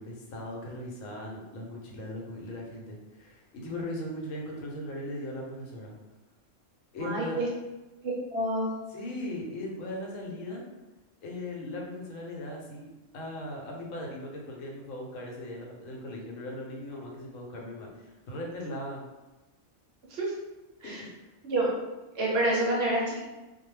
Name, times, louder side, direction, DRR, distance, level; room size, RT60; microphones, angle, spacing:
voice 1, 0.0-6.0 6.9-7.4 8.9-10.6 11.2-19.0 20.8-21.3, left 1 dB, 85° left, -1 dB, 1.0 m, -38 dB
voice 2, 7.0-7.5 8.0-8.7 20.1-20.3 20.8-21.0 21.4-21.7 22.1-23.2, right 1 dB, 65° right, -3 dB, 0.7 m, -28 dB
2.3 x 2.1 x 3.1 m, 1.1 s
omnidirectional pair, 1.4 m